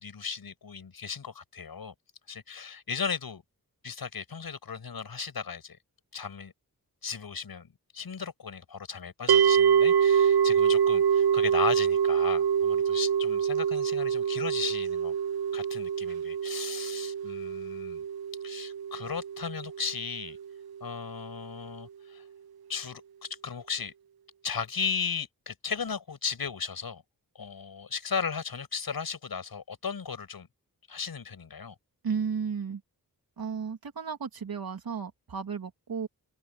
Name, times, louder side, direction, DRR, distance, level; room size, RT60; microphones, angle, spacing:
voice 1, 0.0-1.9 2.3-3.4 3.8-5.8 6.1-6.5 7.0-15.1 15.5-18.0 18.4-20.4 20.8-22.2 22.7-23.9 24.4-27.0 27.3-30.5 30.9-31.7, left 6 dB, 75° left, 6.3 m, -36 dB
sound 1, 9.3-20.4, right 8 dB, 90° right, 0.7 m, -25 dB
voice 2, 32.0-32.8 33.4-36.1, right 6 dB, 75° right, 3.3 m, -33 dB
open air
wide cardioid pair, 135°, 36 cm